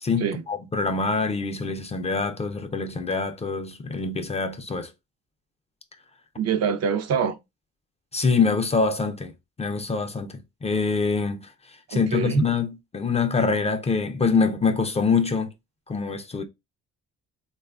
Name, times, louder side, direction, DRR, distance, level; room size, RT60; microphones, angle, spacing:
voice 1, 0.0-4.9 8.1-9.3 9.6-11.5 11.9-15.5 15.9-16.4, left 4 dB, 20° left, 0.4 m, -25 dB
voice 2, 6.4-7.4 11.9-12.5, right 7 dB, 55° right, 0.5 m, -25 dB
3.1 x 2.3 x 2.3 m
cardioid pair, 90°, 30 cm